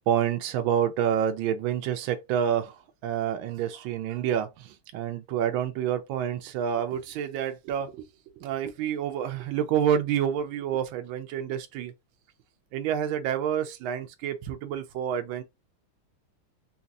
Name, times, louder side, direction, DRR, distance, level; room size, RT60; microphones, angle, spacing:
voice 1, 0.1-8.0 8.4-11.9 12.7-15.4, right 9 dB, 75° right, 1.4 m, -28 dB
3.9 x 2.8 x 2.4 m
omnidirectional pair, 2.3 m